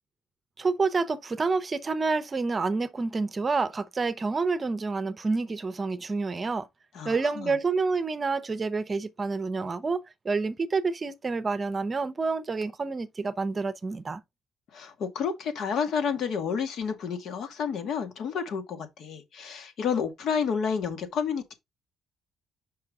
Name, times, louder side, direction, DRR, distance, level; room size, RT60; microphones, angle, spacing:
voice 1, 0.6-6.7 7.0-14.2, right 4 dB, 35° right, 0.8 m, -28 dB
voice 2, 6.9-7.5 14.7-21.5, left 6 dB, 70° left, 1.8 m, -30 dB
5.5 x 5.5 x 3.6 m
cardioid pair, 90°, 0 cm